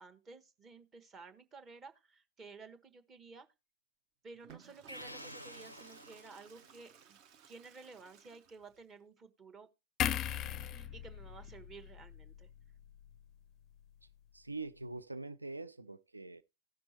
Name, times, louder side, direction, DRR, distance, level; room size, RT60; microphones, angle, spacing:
voice 1, 0.0-3.5 4.2-7.2 7.5-9.7 10.7-12.5, right 4 dB, 25° right, 1.1 m, -54 dB
Water / Toilet flush, 4.3-8.8, right 8 dB, 40° right, 0.8 m, -58 dB
sound 1, 4.9-6.8, left 1 dB, 90° left, 0.4 m, -50 dB
sound 2, 10.0-13.4 13.7-13.9, left 10 dB, 30° left, 0.5 m, -39 dB
voice 2, 14.3-16.4, right 3 dB, 80° right, 0.4 m, -44 dB
17.0 x 6.0 x 2.8 m
figure-of-eight pair, 90°, 0 cm